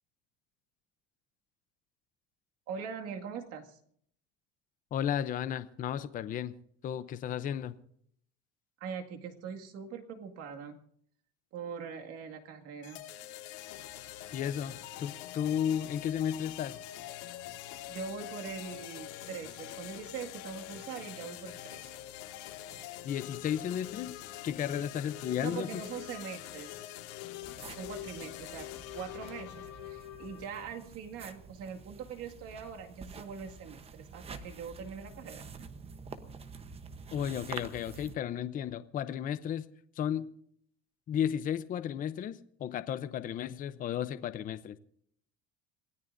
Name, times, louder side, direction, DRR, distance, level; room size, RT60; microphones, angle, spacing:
voice 1, 2.7-3.8 8.8-10.8 11.5-13.0 17.9-21.9 25.4-26.7 27.7-28.7 28.9-35.5, right 6 dB, 45° right, 3 dB, 2.1 m, -42 dB
voice 2, 4.9-6.5 6.8-7.8 14.3-16.8 23.0-24.1 24.4-25.7 37.1-39.7 40.0-40.3 41.1-44.8, left 9 dB, 25° left, 13 dB, 0.6 m, -33 dB
sound 1, 12.8-30.8, left 13 dB, 85° left, 3.0 m, -45 dB
sound 2, 13.7-30.2, left 10 dB, 65° left, 2.0 m, -55 dB
sound 3, 27.4-38.2, right 5 dB, 20° right, 0.9 m, -48 dB
26.5 x 17.5 x 2.6 m, 0.66 s
cardioid pair, 160°, 32 cm